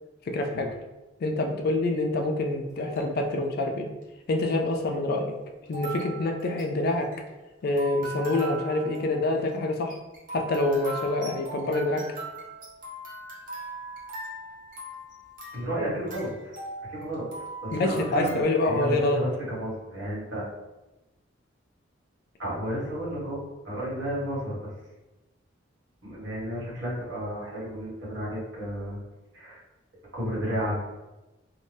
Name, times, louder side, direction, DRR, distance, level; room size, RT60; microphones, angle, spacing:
voice 1, 0.3-0.7 1.2-3.9 4.3-5.3 5.7-7.1 7.6-10.0 10.3-12.0 17.7-19.2, left 2 dB, 55° left, 3 dB, 0.3 m, -26 dB
sound 1, 2.7-3.2 4.0-4.1 5.7-18.4, right 2 dB, 45° right, 0.7 m, -40 dB
voice 2, 15.5-16.5 16.9-17.3 17.6-20.5 22.4-23.4 23.6-24.7 26.0-29.0 29.3-29.6 30.1-30.8, equal, 75° right, -7 dB, 1.3 m, -32 dB
2.6 x 2.1 x 3.2 m, 1.0 s
head